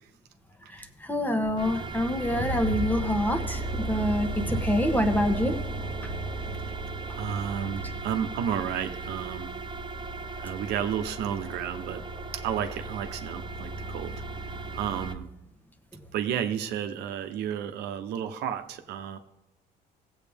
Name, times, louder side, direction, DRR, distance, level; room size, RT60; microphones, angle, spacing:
voice 1, 0.7-5.5, equal, 10° left, 7 dB, 1.2 m, -26 dB
sound 1, 1.4-15.1, right 2 dB, 30° right, 0.8 m, -35 dB
voice 2, 7.1-9.5 10.4-12.0 12.3-14.1 14.7-15.3 16.1-19.2, right 9 dB, 80° right, 8 dB, 0.9 m, -32 dB
16.5 x 8.0 x 3.5 m, 0.96 s
cardioid pair, 110°, 17 cm